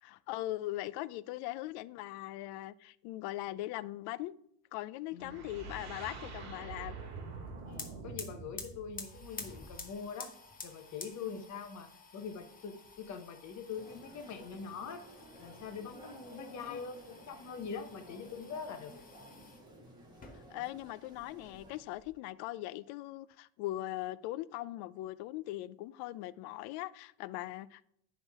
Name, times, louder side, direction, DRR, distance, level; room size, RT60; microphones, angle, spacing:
voice 1, 0.0-4.4 4.7-7.0 16.7-16.8 20.5-27.8, left 16 dB, 65° left, 0.5 m, -40 dB
voice 2, 5.1-5.4 7.6-10.3 10.6-15.0 15.4-18.9, left 6 dB, 40° left, 1.1 m, -43 dB
sound 1, 5.2-10.0, right 4 dB, 35° right, 2.1 m, -46 dB
sound 2, 7.4-7.5 7.7-19.6 20.1-20.9 21.1-22.1, left 4 dB, 20° left, 0.9 m, -51 dB
sound 3, 13.8-21.8, right 1 dB, 10° right, 1.7 m, -55 dB
10.0 x 3.7 x 3.6 m
supercardioid pair, 120°, 43 cm